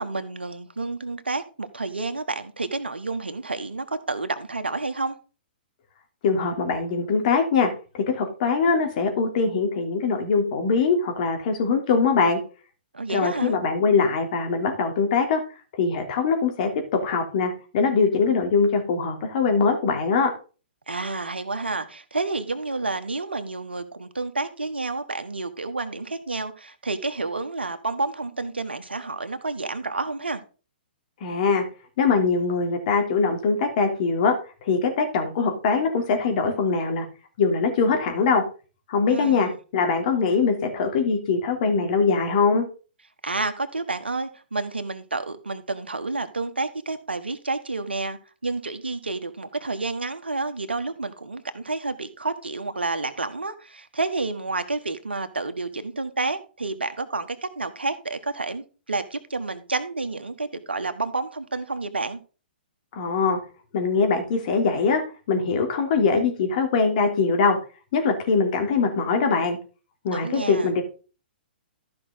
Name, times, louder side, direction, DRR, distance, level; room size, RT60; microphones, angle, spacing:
voice 1, 0.0-5.2 12.9-13.5 20.9-30.4 39.1-39.5 43.2-62.2 70.1-70.7, right 3 dB, 80° right, 1.4 m, -30 dB
voice 2, 6.2-7.7 7.9-12.4 13.1-15.4 15.8-16.7 17.0-20.3 31.2-31.6 32.0-34.3 34.6-37.1 37.4-38.4 38.9-42.6 62.9-63.4 63.7-65.0 65.3-67.6 67.9-69.6 70.0-70.8, left 4 dB, 50° left, 3.1 m, -22 dB
13.5 x 5.9 x 3.9 m
figure-of-eight pair, 120°, 6 cm